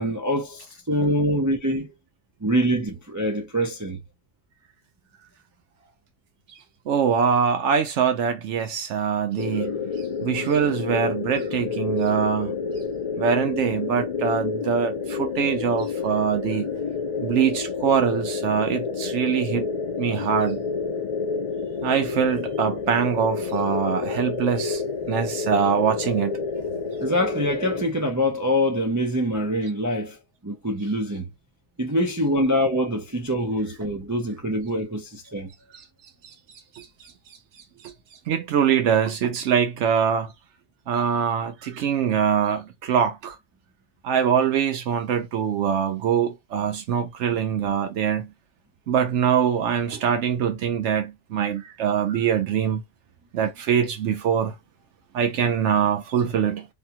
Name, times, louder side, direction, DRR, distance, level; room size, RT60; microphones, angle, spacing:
voice 1, 0.0-1.9 2.4-4.0 27.0-30.1 30.4-31.3 31.8-35.5, equal, 30° right, 0.3 m, -24 dB
voice 2, 6.9-9.8 10.2-12.6 13.2-16.7 17.2-19.7 20.0-20.6 21.8-24.8 25.1-26.4 36.2-36.3 36.8-36.9 38.3-40.3 40.9-43.4 44.0-48.3 48.9-52.8 53.3-54.5 55.1-56.7, right 7 dB, 80° right, 0.9 m, -23 dB
sound 1, 9.4-27.8, left 5 dB, 55° left, 0.4 m, -29 dB
3.4 x 2.2 x 2.8 m
omnidirectional pair, 1.2 m